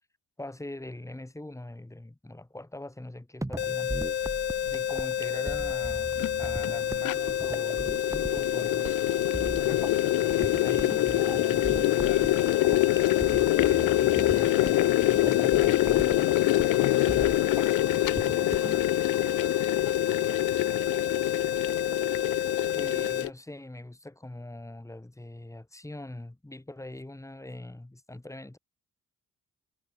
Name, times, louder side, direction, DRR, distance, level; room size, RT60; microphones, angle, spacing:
voice 1, 0.4-3.9 4.6-9.0 9.5-9.9 10.2-12.4 13.3-16.3 22.7-28.6, left 1 dB, 10° left, 7.4 m, -42 dB
sound 1, 3.4-18.8, right 1 dB, 10° right, 7.1 m, -38 dB
sound 2, 3.6-23.3, left 9 dB, 35° left, 0.5 m, -30 dB
sound 3, 4.7-4.8 5.8-23.3, left 17 dB, 90° left, 1.2 m, -26 dB
voice 2, 9.7-10.5 12.0-12.4 13.6-13.7 16.7-21.3, left 12 dB, 70° left, 2.6 m, -40 dB
cardioid pair, 90°, 30 cm